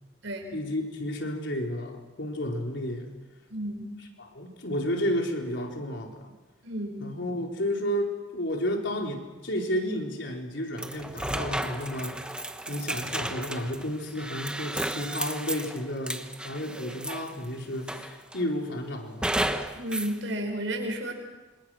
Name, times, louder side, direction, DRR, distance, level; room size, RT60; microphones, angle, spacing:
voice 1, 0.5-3.1 4.2-6.3 7.0-12.4 12.7-19.5, equal, 70° left, 1 dB, 4.3 m, -32 dB
voice 2, 3.5-3.9 6.6-7.1 19.8-21.1, right 1 dB, 75° right, 2 dB, 6.4 m, -32 dB
sound 1, 10.8-17.4 17.9-18.5 19.2-20.2, right 1 dB, 5° right, 1.2 m, -33 dB
27.0 x 25.5 x 6.4 m, 1.2 s
head